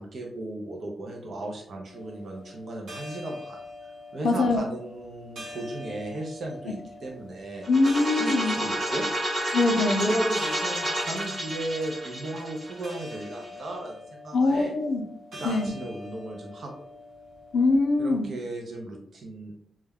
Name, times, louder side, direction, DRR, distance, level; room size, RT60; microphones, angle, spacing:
voice 1, 0.0-3.6 4.1-7.7 8.1-9.1 10.0-14.7 15.3-16.7 18.0-19.6, right 2 dB, 50° right, 0 dB, 0.4 m, -35 dB
sound 1, 1.8-18.3, left 2 dB, 85° right, 0.8 m, -45 dB
voice 2, 4.2-4.6 7.7-8.5 9.5-10.1 14.3-15.0 15.4-15.7 17.5-18.3, left 3 dB, 75° left, 4 dB, 0.4 m, -23 dB
sound 2, 7.6-13.4, right 1 dB, 20° right, 0.8 m, -30 dB
2.2 x 2.1 x 3.3 m, 0.67 s
wide cardioid pair, 170°, 0 cm